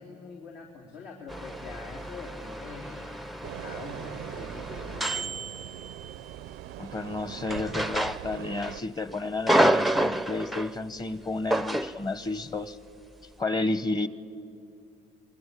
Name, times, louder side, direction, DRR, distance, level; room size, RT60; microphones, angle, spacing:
voice 1, 0.0-5.4, left 4 dB, 75° left, -3 dB, 3.8 m, -44 dB
sound 1, 1.3-6.3 7.5-8.7 9.1-10.8 11.5-12.0, right 1 dB, ahead, 0.5 m, -29 dB
sound 2, 3.4-8.8, right 14 dB, 80° right, 0.5 m, -41 dB
voice 2, 6.8-12.8 13.4-14.1, left 3 dB, 25° left, 14 dB, 1.1 m, -31 dB
27.0 x 22.5 x 8.5 m, 2.5 s
cardioid pair, 110°, 17 cm